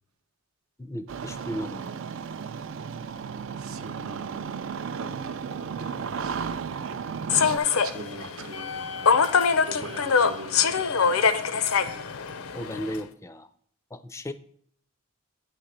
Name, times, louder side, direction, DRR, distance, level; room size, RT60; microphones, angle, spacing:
voice 1, 0.8-2.0 12.5-13.5 13.9-14.3, equal, 15° left, 11 dB, 0.4 m, -35 dB
Engine starting, 1.1-7.6, right 6 dB, 65° right, 0.4 m, -34 dB
voice 2, 3.6-4.4 4.9-6.5 6.8-9.1 9.6-10.7, right 3 dB, 80° right, 8 dB, 0.8 m, -42 dB
Human voice / Subway metro underground, 7.3-13.0, left 6 dB, 80° left, 0.6 m, -24 dB
9.2 x 3.3 x 6.4 m, 0.63 s
head